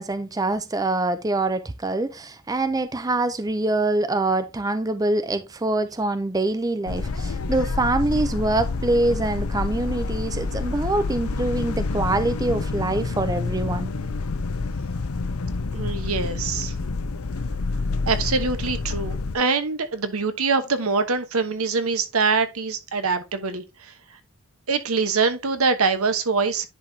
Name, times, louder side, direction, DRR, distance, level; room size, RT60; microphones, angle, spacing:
voice 1, 0.0-13.9, right 2 dB, 15° right, 0.5 m, -24 dB
sound 1, 6.9-19.4, left 3 dB, 85° left, 0.6 m, -28 dB
voice 2, 15.7-16.7 18.1-23.9 24.7-26.7, right 4 dB, 85° right, 1.1 m, -24 dB
10.5 x 4.8 x 2.7 m
head